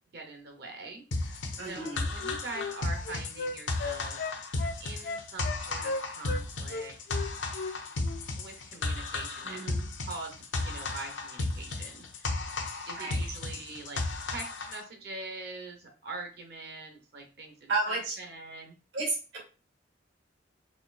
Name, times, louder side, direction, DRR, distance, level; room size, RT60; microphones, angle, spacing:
voice 1, 0.1-4.2 4.8-6.9 8.4-9.7 10.1-12.5 12.9-18.8, right 3 dB, 60° right, 3 dB, 0.8 m, -43 dB
sound 1, 1.1-14.8, left 2 dB, 85° left, 0.7 m, -34 dB
voice 2, 1.6-2.1 9.4-9.9 13.0-13.2 17.7-18.2 18.9-19.4, right 3 dB, 80° right, -3 dB, 2.0 m, -32 dB
Wind instrument woodwind instrument, 1.8-6.4 6.7-7.8 8.0-8.2, left 3 dB, 55° left, 0.3 m, -36 dB
4.2 x 3.2 x 2.4 m, 0.35 s
head